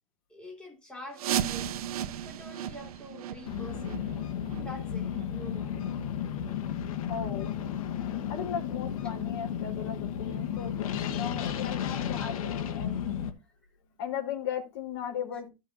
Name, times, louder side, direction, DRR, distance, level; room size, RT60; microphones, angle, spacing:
voice 1, 0.3-1.7 2.2-4.1 4.5-5.8 7.6-7.7 12.1-12.3, left 1 dB, 5° left, 3.1 m, -46 dB
sound 1, 1.1-6.7 7.1-7.2 7.7-7.8 8.4-8.5 9.1-9.2, right 10 dB, 80° right, 0.7 m, -36 dB
sound 2, 3.5-13.3, left 9 dB, 70° left, 1.5 m, -33 dB
voice 2, 7.1-7.5 8.3-13.0 14.0-15.5, left 8 dB, 50° left, 3.7 m, -37 dB
14.5 x 6.3 x 2.6 m
supercardioid pair, 150°, 18 cm